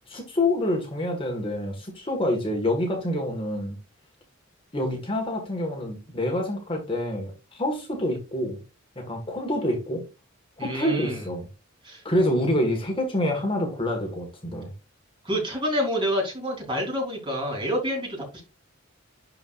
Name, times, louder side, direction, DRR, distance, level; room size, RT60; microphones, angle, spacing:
voice 1, 0.0-3.8 4.7-8.6 8.9-10.0 10.6-11.5 12.0-14.7, left 1 dB, 25° left, 1.7 m, -27 dB
voice 2, 10.6-11.2 11.8-12.0 15.2-18.4, equal, 25° right, 3.7 m, -28 dB
11.5 x 4.7 x 2.5 m
head